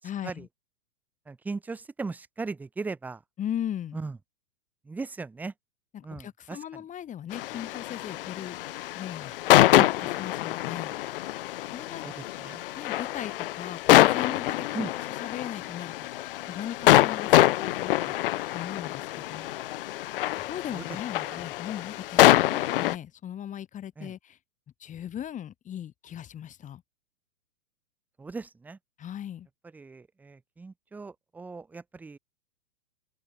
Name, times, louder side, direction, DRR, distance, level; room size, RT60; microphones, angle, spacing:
voice 1, 0.0-0.5 3.4-4.0 5.9-8.6 8.9-9.3 10.0-10.9 11.7-12.1 12.8-15.9 16.2-18.2 18.5-19.5 20.3-24.4 24.8-26.8 29.0-29.5, left 10 dB, 15° left, 1.6 m, -38 dB
voice 2, 1.3-3.2 3.9-4.2 4.9-5.5 6.0-6.8 9.7-10.1 12.0-12.6 14.7-14.9 20.7-20.8 21.2-21.4 24.0-24.1 28.2-28.8 29.7-32.2, right 4 dB, 5° right, 0.6 m, -38 dB
sound 1, 7.3-23.0, left 16 dB, 40° left, 0.5 m, -25 dB
open air
hypercardioid pair, 120°, 43 cm